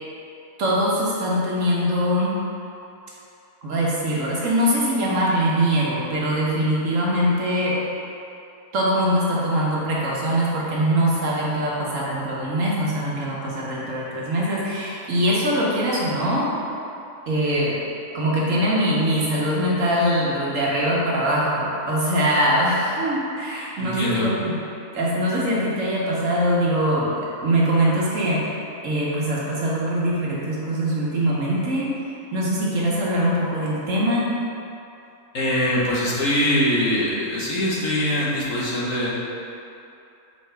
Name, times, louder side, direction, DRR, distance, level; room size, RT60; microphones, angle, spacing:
voice 1, 0.6-2.4 3.6-7.8 8.7-16.5 17.3-17.7 18.1-24.5 24.9-27.1 27.4-28.4 28.8-31.9 32.3-34.3, equal, 65° right, -5 dB, 1.4 m, -22 dB
voice 2, 23.8-24.3 35.3-39.1, left 1 dB, 65° left, -6 dB, 1.5 m, -22 dB
6.5 x 4.7 x 3.4 m, 2.7 s
omnidirectional pair, 1.5 m